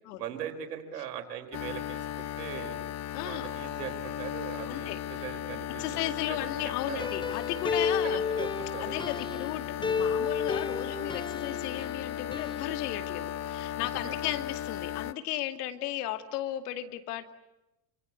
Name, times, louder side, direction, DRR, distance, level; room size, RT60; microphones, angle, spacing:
voice 1, 0.2-2.8 3.2-6.0 6.3-7.1 7.7-7.8 8.0-8.9 9.3-9.4 13.8-14.2, right 9 dB, 70° right, 7 dB, 4.6 m, -40 dB
sound 1, 1.5-15.1, left 11 dB, 35° left, 1.1 m, -36 dB
voice 2, 3.1-3.5 4.7-5.0 5.8-8.2 8.8-17.3, left 13 dB, 65° left, 8 dB, 2.6 m, -35 dB
sound 2, 7.0-9.6 9.8-12.0 12.3-12.6, left 5 dB, 10° left, 0.9 m, -32 dB
27.5 x 26.0 x 8.4 m, 0.92 s
hypercardioid pair, 75°, 49 cm